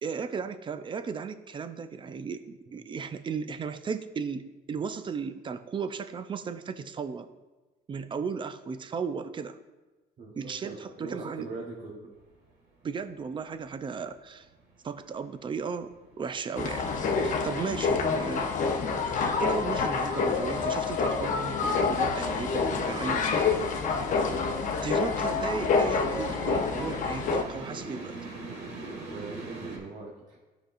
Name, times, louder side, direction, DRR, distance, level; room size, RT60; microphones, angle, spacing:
voice 1, 0.0-7.3 7.9-9.6 10.4-11.6 12.8-14.5 14.8-18.6 19.1-23.3 24.8-28.2, right 5 dB, 30° right, 11 dB, 0.4 m, -35 dB
voice 2, 10.2-12.1 24.2-24.5 29.1-30.4, right 3 dB, 50° right, -3 dB, 1.1 m, -42 dB
sound 1, 12.2-29.8, right 3 dB, 80° right, 1.7 m, -45 dB
sound 2, 16.6-27.4, left 4 dB, 50° left, 0.8 m, -27 dB
12.0 x 5.1 x 2.5 m, 1.2 s
cardioid pair, 110°, 17 cm